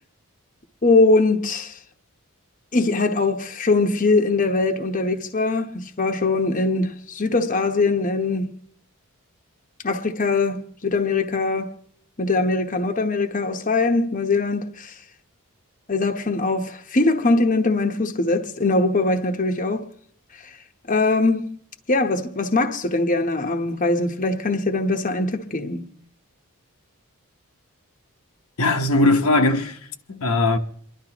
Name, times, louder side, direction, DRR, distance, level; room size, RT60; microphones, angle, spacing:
voice 1, 0.8-1.8 2.7-8.5 9.8-11.8 12.2-15.0 15.9-19.9 20.4-20.5 20.9-21.6 21.9-25.9, left 3 dB, 35° left, 1.0 m, -22 dB
voice 2, 28.6-29.8 30.1-30.6, left 2 dB, 80° left, 1.1 m, -19 dB
28.5 x 11.5 x 3.0 m
head